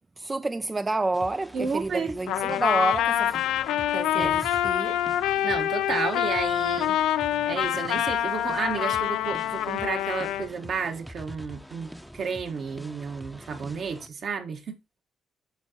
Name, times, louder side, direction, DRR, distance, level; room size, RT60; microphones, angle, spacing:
voice 1, 0.2-3.4 3.9-5.0, right 2 dB, 20° right, 0.4 m, -29 dB
sound 1, 1.1-14.1, equal, 5° right, 0.8 m, -45 dB
voice 2, 1.5-2.1 4.1-4.4 5.4-7.0 7.5-14.8, right 5 dB, 60° right, 1.7 m, -32 dB
Trumpet, 2.3-10.5, left 11 dB, 90° left, 0.5 m, -26 dB
8.9 x 6.8 x 2.9 m
cardioid pair, 90°, 0 cm